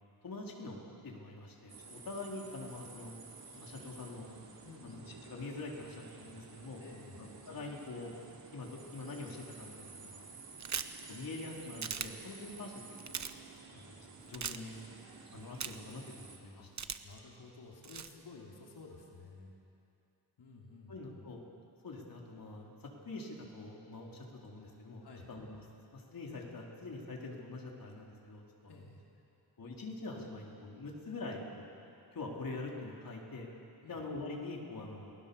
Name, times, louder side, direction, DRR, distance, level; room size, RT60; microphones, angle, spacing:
voice 1, 0.2-3.1 3.5-4.3 4.8-6.8 7.2-8.1 8.5-10.3 11.1-13.4 13.7-14.0 14.3-14.8 15.3-16.7 20.9-21.4 21.8-25.6 25.9-28.8 29.6-31.7 32.1-33.5 33.9-35.1, left 2 dB, 55° left, -1 dB, 4.0 m, -45 dB
sound 1, 1.7-16.4, right 4 dB, 60° right, 3.3 m, -53 dB
sound 2, 3.8-5.2 6.0-9.2 11.6-13.0 13.7-16.9, right 2 dB, 10° right, 5.6 m, -63 dB
voice 2, 4.6-5.1 6.8-7.2 16.6-16.7 17.0-19.5 20.4-21.2 25.0-25.3 28.7-29.0 33.8-34.0, left 3 dB, 80° left, -2 dB, 3.6 m, -53 dB
sound 3, 10.6-11.0 11.8-12.1 13.0-13.3 14.3-14.6 15.6-15.9 16.8-17.2 17.8-18.1, right 7 dB, 45° right, 1.0 m, -38 dB
29.5 x 19.5 x 7.1 m, 2.7 s
wide cardioid pair, 125°, 40 cm